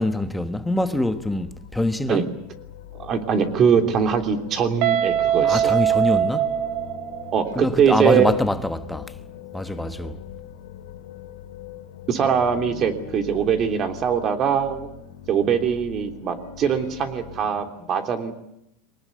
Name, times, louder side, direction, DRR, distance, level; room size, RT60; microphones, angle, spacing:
voice 1, 0.0-2.3 5.4-6.5 7.5-9.1 9.5-10.2, left 1 dB, 5° left, 1.2 m, -24 dB
sound 1, 0.6-17.6, left 10 dB, 85° left, 3.4 m, -42 dB
voice 2, 3.0-5.7 7.3-8.3 9.7-9.9 12.1-14.9 15.3-18.3, right 7 dB, 35° right, 3.2 m, -22 dB
Guitar, 4.8-7.6, right 10 dB, 55° right, 2.1 m, -22 dB
23.5 x 19.5 x 9.4 m
supercardioid pair, 135°, 0 cm